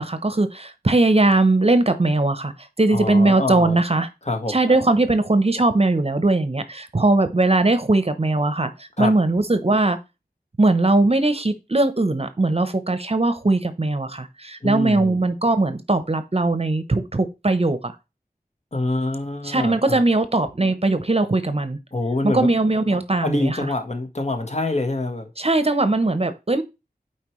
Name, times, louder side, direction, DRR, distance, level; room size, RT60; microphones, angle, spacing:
voice 1, 0.0-2.5 2.8-4.1 4.5-10.0 10.6-17.9 19.4-21.8 22.2-23.7 25.4-26.6, right 2 dB, 40° right, 0.8 m, -20 dB
voice 2, 2.9-3.8 4.3-4.8 7.0-7.1 9.0-9.1 14.6-15.2 18.7-20.0 21.9-22.5 23.2-25.3, left 2 dB, 45° left, 1.3 m, -25 dB
8.1 x 4.6 x 3.1 m
wide cardioid pair, 50°, 16 cm